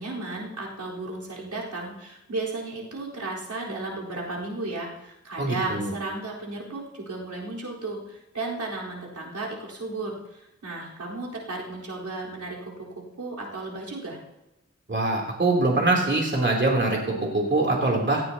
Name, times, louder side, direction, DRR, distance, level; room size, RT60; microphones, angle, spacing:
voice 1, 0.0-14.2, right 2 dB, 85° right, -5 dB, 4.1 m, -34 dB
voice 2, 5.4-5.9 14.9-18.2, right 2 dB, 40° right, -1 dB, 3.2 m, -23 dB
17.5 x 15.5 x 2.9 m, 0.96 s
wide cardioid pair, 85°, 29 cm